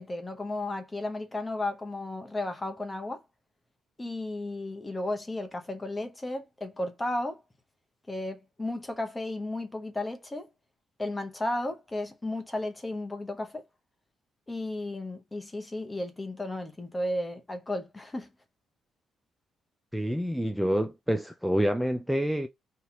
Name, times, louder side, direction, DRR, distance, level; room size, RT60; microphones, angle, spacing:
voice 1, 0.0-3.2 4.0-7.4 8.1-10.5 11.0-13.6 14.5-18.3, left 1 dB, 15° left, 0.9 m, -34 dB
voice 2, 19.9-22.5, equal, ahead, 0.4 m, -27 dB
2.9 x 2.5 x 4.2 m
cardioid pair, 90°, 0 cm